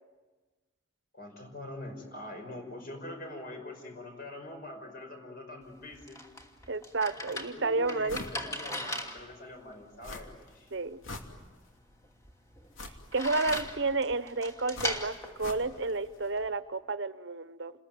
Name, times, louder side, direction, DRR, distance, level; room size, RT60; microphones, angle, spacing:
voice 1, 1.1-6.2 7.5-10.7, left 1 dB, 45° left, 4 dB, 5.4 m, -44 dB
sound 1, 5.6-16.5, left 1 dB, 15° left, 2.6 m, -40 dB
voice 2, 6.7-8.2 10.7-11.0 13.1-17.7, right 3 dB, 60° right, 13 dB, 1.0 m, -31 dB
sound 2, 8.1-8.4 8.8-8.9 10.0-10.5 10.9-11.8 12.7-14.0 14.7-16.0 16.2-16.3, left 2 dB, 80° left, 2.9 m, -44 dB
29.0 x 21.5 x 9.2 m, 1.3 s
head